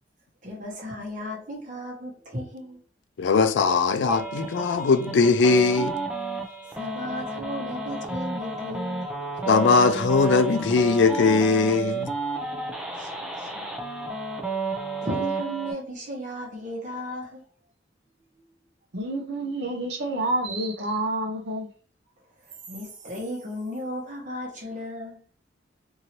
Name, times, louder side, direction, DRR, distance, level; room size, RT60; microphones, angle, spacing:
voice 1, 0.4-2.8 6.6-9.1 12.9-13.1 13.4-13.7 15.0-17.4 22.7-25.2, equal, 40° right, 1.2 m, -35 dB
voice 2, 3.2-5.9 9.5-12.1, left 4 dB, 75° left, 0.4 m, -20 dB
sound 1, 4.1-15.7, right 3 dB, 5° right, 0.4 m, -31 dB
voice 3, 18.9-21.7, right 2 dB, 65° right, 0.8 m, -28 dB
2.8 x 2.7 x 2.8 m
head